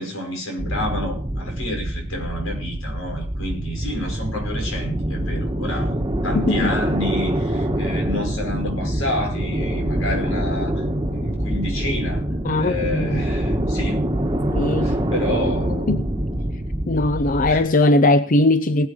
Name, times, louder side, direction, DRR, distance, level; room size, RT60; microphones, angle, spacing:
voice 1, 0.0-12.3 12.6-14.1 14.8-15.9 17.5-17.9, left 1 dB, 75° left, 5.5 m, -29 dB
sound 1, 0.6-17.7, right 1 dB, 20° right, 1.3 m, -25 dB
voice 2, 6.3-6.7 12.4-13.2 14.5-15.0 15.9-16.0 16.9-18.9, left 2 dB, 40° left, 0.6 m, -19 dB
19.5 x 8.1 x 5.1 m
head